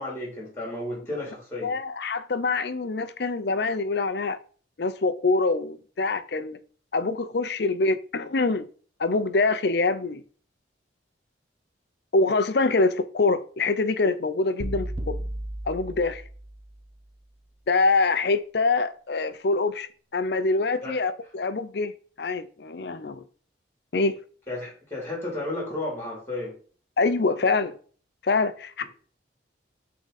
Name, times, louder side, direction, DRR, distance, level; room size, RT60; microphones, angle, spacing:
voice 1, 0.0-1.7 20.8-21.0 24.5-26.5, left 2 dB, 15° left, 3.1 m, -33 dB
voice 2, 1.6-4.4 4.8-6.6 6.9-8.7 9.0-10.2 12.1-15.2 15.7-16.2 17.7-21.9 22.2-23.2 23.9-24.1 27.0-27.8 28.2-28.8, left 3 dB, 60° left, 0.5 m, -25 dB
sound 1, 14.6-16.8, right 1 dB, 30° right, 0.6 m, -34 dB
6.2 x 3.8 x 4.0 m
head